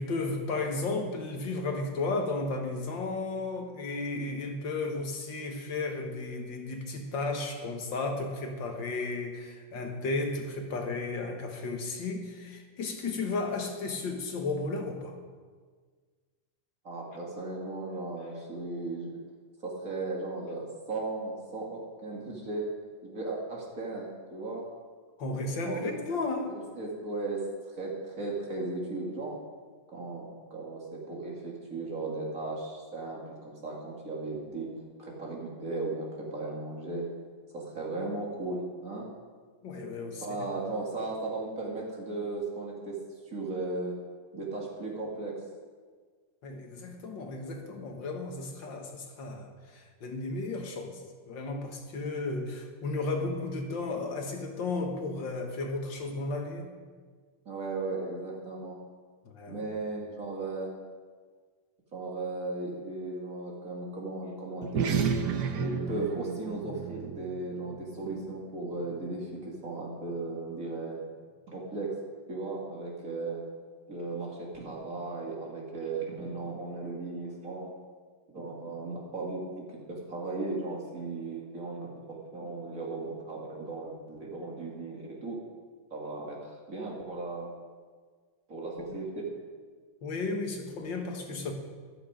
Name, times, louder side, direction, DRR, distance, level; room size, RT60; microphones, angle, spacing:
voice 1, 0.0-15.2 25.2-26.5 39.6-40.5 46.4-56.7 59.3-59.6 88.9-89.0 90.0-91.5, left 3 dB, 70° left, 3 dB, 2.2 m, -34 dB
voice 2, 16.8-19.2 19.6-22.7 23.0-24.7 25.6-26.0 26.4-27.4 27.8-29.4 29.9-34.7 35.0-37.1 37.5-39.1 40.2-43.0 43.3-43.9 44.3-45.4 57.5-58.8 59.5-60.7 61.9-64.9 65.5-71.0 71.5-72.0 72.3-73.4 73.9-77.7 78.3-85.4 85.9-87.5 88.5-89.2, right 3 dB, 40° right, -2 dB, 2.8 m, -36 dB
sound 1, 64.6-69.4, right 6 dB, 65° right, 1.4 m, -33 dB
13.5 x 12.0 x 5.1 m, 1.6 s
omnidirectional pair, 2.2 m